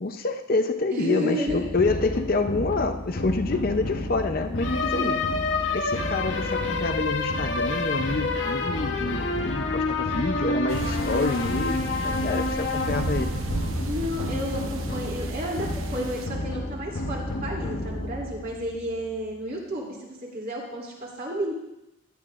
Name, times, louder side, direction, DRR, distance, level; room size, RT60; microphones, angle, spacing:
voice 1, 0.0-5.2 5.7-13.4, left 3 dB, 45° left, 7 dB, 0.6 m, -27 dB
voice 2, 0.9-1.6 4.9-5.3 13.9-21.5, equal, 50° right, -3 dB, 2.9 m, -32 dB
sound 1, 1.5-19.1, left 2 dB, 65° left, 1.0 m, -29 dB
sound 2, 10.7-16.3, right 2 dB, 85° right, 0.8 m, -34 dB
15.5 x 11.0 x 2.5 m, 0.91 s
head